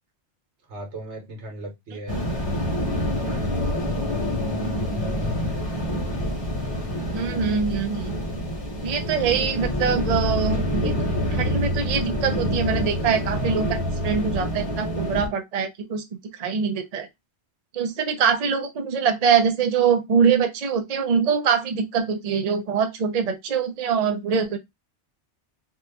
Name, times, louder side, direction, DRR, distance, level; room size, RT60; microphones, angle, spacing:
voice 1, 0.7-2.3 3.0-5.5, right 2 dB, 75° right, 1.4 m, -40 dB
sound 1, 2.1-15.3, equal, 25° left, 1.0 m, -26 dB
voice 2, 7.1-8.1 8.8-10.9 11.3-16.0 16.4-17.1 17.7-24.6, right 6 dB, 50° right, 0.5 m, -23 dB
2.8 x 2.4 x 3.4 m
omnidirectional pair, 1.2 m